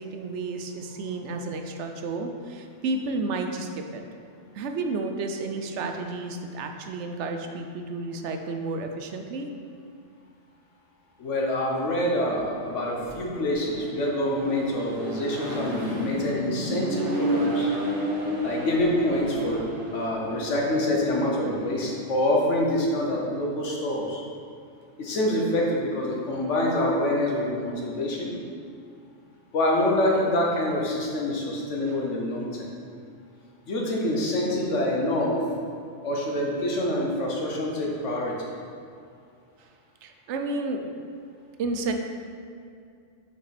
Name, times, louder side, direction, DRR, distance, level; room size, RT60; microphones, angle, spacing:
voice 1, 0.0-4.0 4.5-9.5 31.9-32.0 40.0-40.9 41.6-41.9, right 3 dB, 75° right, 5 dB, 0.9 m, -31 dB
voice 2, 11.2-17.7 18.4-19.6 19.9-24.2 25.0-28.3 29.5-32.7 33.7-35.4 36.0-38.5, left 1 dB, 80° left, -2 dB, 1.4 m, -26 dB
Accelerating revving vroom, 12.1-22.5, equal, 50° right, 1.4 m, -32 dB
6.1 x 5.4 x 4.2 m, 2.4 s
omnidirectional pair, 1.2 m